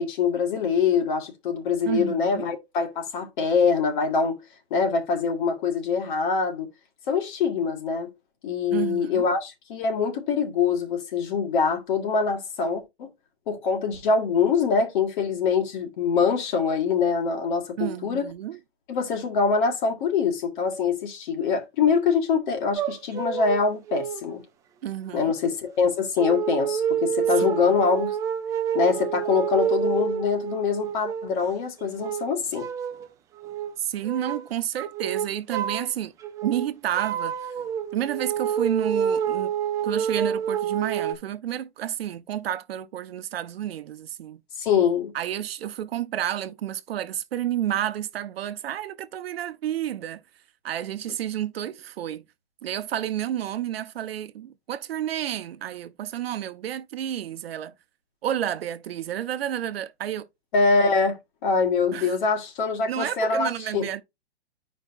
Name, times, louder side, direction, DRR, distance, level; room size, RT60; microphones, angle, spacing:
voice 1, 0.0-4.4 4.7-6.7 7.1-8.1 8.4-13.1 13.5-18.3 18.9-24.4 25.1-28.2 28.7-32.7 44.6-45.1 60.5-63.8, left 5 dB, 50° left, 1.9 m, -24 dB
voice 2, 1.8-2.5 8.7-9.3 17.8-18.6 24.8-25.3 27.4-27.7 33.8-36.1 36.4-37.4 37.9-39.5 39.8-44.4 45.1-50.2 50.6-52.2 52.6-57.7 58.2-60.3 61.9-62.1 62.9-64.0, right 11 dB, 65° right, 0.9 m, -30 dB
sound 1, 22.8-23.6 23.9-24.3 25.1-25.2 26.2-31.4 31.8-33.1 33.4-33.7 34.0-34.5 34.8-35.9 36.2-41.1, right 8 dB, 10° right, 0.4 m, -28 dB
9.7 x 5.2 x 2.5 m
hypercardioid pair, 140°, 32 cm